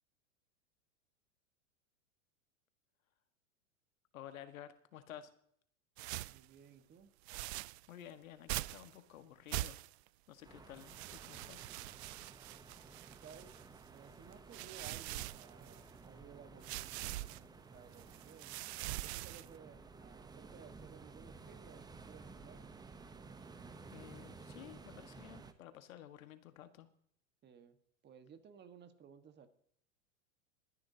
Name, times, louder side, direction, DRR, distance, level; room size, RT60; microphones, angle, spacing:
voice 1, 4.1-5.3 7.9-9.8 10.3-11.6 23.9-26.9, left 11 dB, 80° left, 10 dB, 1.6 m, -53 dB
sound 1, 6.0-6.5 7.3-7.9 8.5-8.9 9.5-10.1 10.8-13.8 14.3-16.0 16.6-17.4 17.9-19.6, right 18 dB, 55° right, 0.5 m, -43 dB
voice 2, 6.3-7.1 13.2-13.6 13.8-18.6 18.9-22.7 27.4-27.8 28.0-29.5, right 7 dB, 25° right, 10 dB, 1.5 m, -58 dB
sound 2, 10.4-25.5, right 4 dB, 10° right, 0.8 m, -55 dB
22.0 x 10.5 x 2.8 m, 0.66 s
hypercardioid pair, 120°, 40 cm